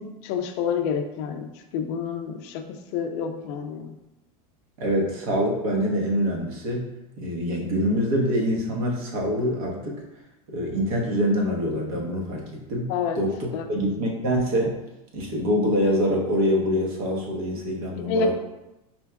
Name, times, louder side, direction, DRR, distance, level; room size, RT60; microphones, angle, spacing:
voice 1, 0.0-3.9 12.9-13.2 13.5-13.6 18.0-18.3, left 5 dB, 45° left, 6 dB, 0.4 m, -28 dB
voice 2, 4.8-6.9 7.2-10.0 10.5-14.8 15.1-18.3, equal, 70° right, -1 dB, 1.1 m, -25 dB
4.3 x 2.2 x 3.4 m, 0.94 s
supercardioid pair, 155°, 20 cm